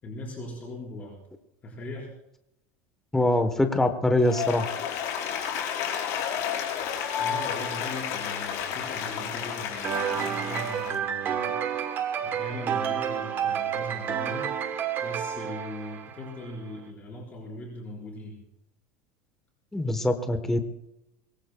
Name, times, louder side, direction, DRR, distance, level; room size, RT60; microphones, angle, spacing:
voice 1, 0.0-1.2 1.6-2.1 7.2-11.9 12.2-14.5 15.0-18.4, left 1 dB, 25° left, -3 dB, 4.6 m, -39 dB
voice 2, 3.1-4.7 19.7-20.7, left 1 dB, 5° left, 7 dB, 1.0 m, -24 dB
Applause, 4.2-11.0, left 8 dB, 50° left, 4.7 m, -31 dB
sound 1, 9.8-16.5, right 8 dB, 30° right, 1.1 m, -30 dB
23.5 x 22.0 x 2.2 m, 0.85 s
supercardioid pair, 165°, 7 cm